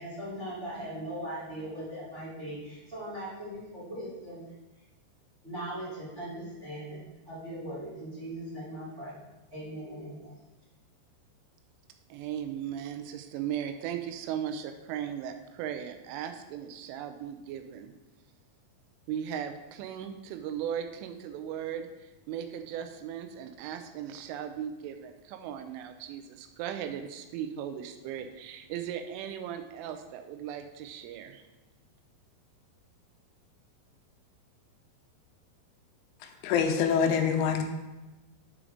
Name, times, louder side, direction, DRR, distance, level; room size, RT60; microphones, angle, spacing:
voice 1, 0.0-4.4 5.4-9.2 9.5-10.3, right 1 dB, 25° right, -9 dB, 1.4 m, -39 dB
voice 2, 12.1-17.9 19.1-31.4, right 9 dB, 85° right, 7 dB, 3.1 m, -37 dB
voice 3, 36.2-37.6, left 7 dB, 85° left, 4 dB, 3.2 m, -26 dB
7.2 x 5.0 x 5.0 m, 1.1 s
omnidirectional pair, 5.5 m